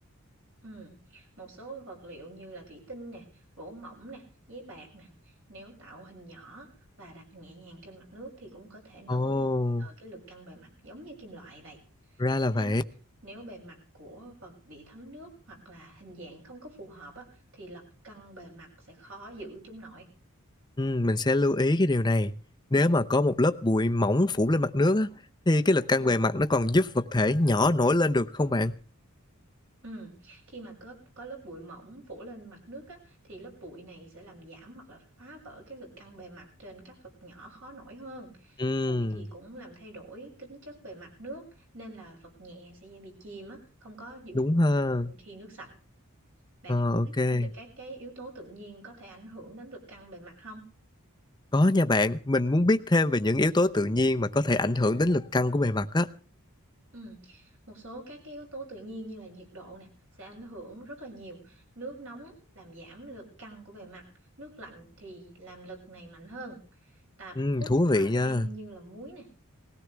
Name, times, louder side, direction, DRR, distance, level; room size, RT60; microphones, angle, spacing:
voice 1, 0.6-6.7 7.0-9.5 9.8-11.8 12.5-12.7 13.2-20.1 29.8-44.4 45.1-45.7 46.6-47.0 47.3-50.6 56.9-59.9 60.2-64.1 64.4-69.4, right 2 dB, 60° right, 6.9 m, -46 dB
voice 2, 9.1-9.9 12.2-12.8 20.8-22.3 22.7-25.1 25.5-28.8 38.6-39.2 44.3-45.1 46.7-47.5 51.5-56.1 67.4-68.5, left 2 dB, 20° left, 0.6 m, -24 dB
20.0 x 16.5 x 3.4 m
head